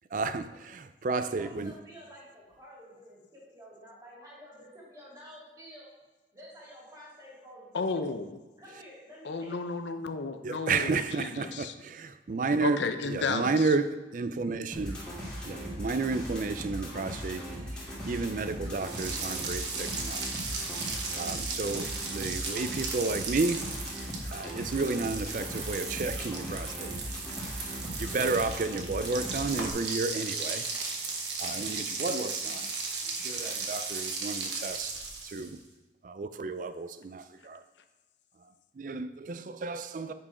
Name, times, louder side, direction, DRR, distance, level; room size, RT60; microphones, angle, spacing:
voice 1, 0.1-1.7 10.4-12.8 13.0-15.0 15.4-17.4 18.1-20.2 21.2-23.7 24.3-27.1 28.0-30.6 31.4-32.7 33.1-35.6 36.0-37.6 38.8-40.1, right 3 dB, 45° right, 0.4 m, -32 dB
voice 2, 1.2-5.9 6.3-8.0 8.6-9.7, equal, 15° right, 2.6 m, -50 dB
voice 3, 7.7-8.4 9.2-11.7 12.6-13.7, left 4 dB, 75° left, 0.6 m, -33 dB
sound 1, 14.7-29.7, equal, 5° left, 2.2 m, -39 dB
sound 2, 18.7-35.6, right 4 dB, 70° right, 1.2 m, -36 dB
8.7 x 4.6 x 4.9 m
head